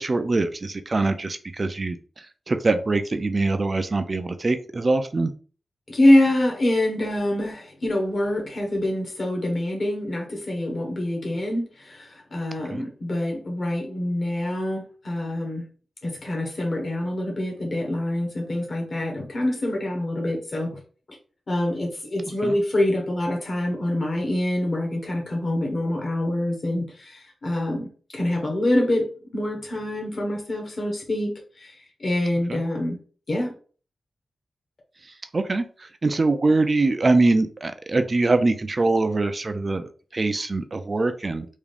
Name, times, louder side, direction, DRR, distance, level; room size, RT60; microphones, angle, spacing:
voice 1, 0.0-2.0 2.5-5.3 12.7-12.8 22.4-22.5 32.5-32.6 35.3-35.6 36.0-41.5, right 3 dB, 30° right, 9 dB, 0.3 m, -23 dB
voice 2, 5.9-15.6 16.0-20.8 21.5-33.0 33.3-33.5, left 1 dB, 40° left, 1 dB, 1.2 m, -25 dB
3.5 x 2.4 x 3.4 m, 0.40 s
wide cardioid pair, 145°, 0 cm